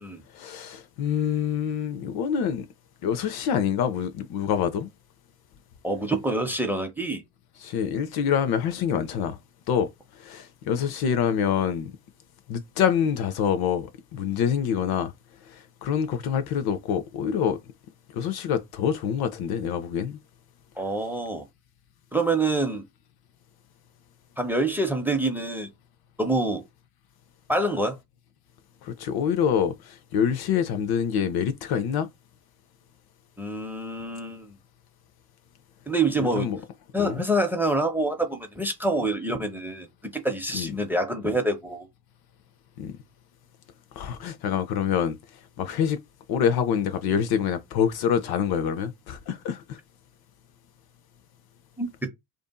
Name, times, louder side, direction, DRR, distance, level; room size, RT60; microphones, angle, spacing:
voice 1, 0.3-2.7 3.0-4.9 7.6-9.4 9.7-11.9 12.5-15.1 15.5-17.6 18.1-20.2 28.8-32.1 36.2-36.6 37.0-37.2 40.5-40.7 42.8-42.9 44.0-45.2 45.6-46.0 46.3-49.8, left 8 dB, 50° left, 0.5 m, -26 dB
voice 2, 5.8-7.2 20.8-21.5 22.1-22.8 24.4-25.7 26.2-26.6 27.5-28.0 33.4-34.5 35.9-36.5 36.9-39.9 40.1-41.9 51.8-52.1, right 2 dB, 5° right, 0.6 m, -26 dB
2.6 x 2.5 x 2.2 m
hypercardioid pair, 65°, 47 cm